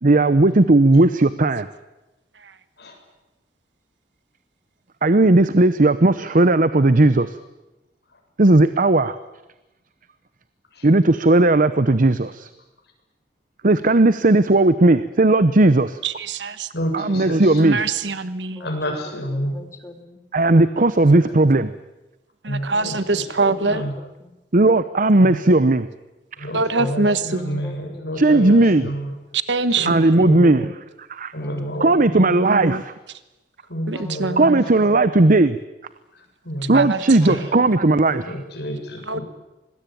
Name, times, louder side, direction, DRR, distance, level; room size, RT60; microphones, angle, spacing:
voice 1, 0.0-1.7 5.0-7.3 8.4-9.2 10.8-12.5 13.6-16.0 16.9-17.8 20.3-21.7 24.5-25.9 26.4-26.5 28.2-28.9 29.9-30.7 31.1-31.3 31.8-32.8 34.4-35.6 36.7-38.3, right 2 dB, 50° right, 13 dB, 0.9 m, -16 dB
voice 2, 16.0-16.7 17.6-18.6 22.4-23.9 26.5-27.6 29.3-30.1 32.4-32.8 33.9-34.6 36.6-37.5 39.1-39.2, right 3 dB, 90° right, 12 dB, 1.3 m, -24 dB
voice 3, 16.7-17.6 18.6-19.6 21.0-21.3 22.5-23.9 25.2-25.4 26.4-29.1 29.8-30.5 31.3-32.4 33.7-34.4 36.4-36.9 37.2-37.4 38.3-39.2, equal, 65° left, 3 dB, 7.4 m, -29 dB
voice 4, 18.5-19.0 19.3-20.2 22.7-22.9 24.0-24.4 26.7-28.1 30.2-30.8 31.4-32.3 33.9-34.9 36.8-37.5 37.9-38.0, left 2 dB, 15° left, 5 dB, 2.9 m, -41 dB
26.0 x 21.0 x 9.3 m, 1.0 s
head